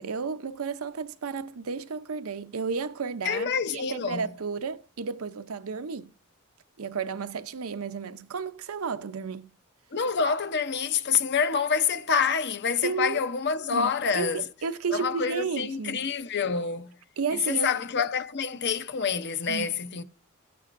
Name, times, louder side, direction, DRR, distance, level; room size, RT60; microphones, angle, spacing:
voice 1, 0.0-6.1 6.8-9.5 12.8-13.2 13.7-16.1 17.2-17.8 19.5-19.7, right 5 dB, 85° right, 0.6 m, -32 dB
voice 2, 3.2-4.3 9.9-14.4 14.9-17.0 17.5-20.0, left 6 dB, 55° left, 0.7 m, -27 dB
14.5 x 9.2 x 2.6 m
head